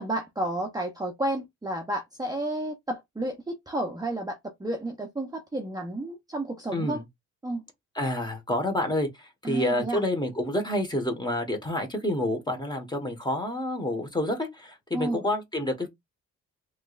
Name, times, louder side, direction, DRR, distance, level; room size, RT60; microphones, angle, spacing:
voice 1, 0.0-7.0 7.4-7.6 9.4-10.0 14.9-15.2, right 1 dB, 10° right, 0.8 m, -31 dB
voice 2, 6.7-7.0 7.9-15.9, left 1 dB, 15° left, 1.4 m, -28 dB
3.3 x 3.2 x 2.5 m
cardioid pair, 90°, 30 cm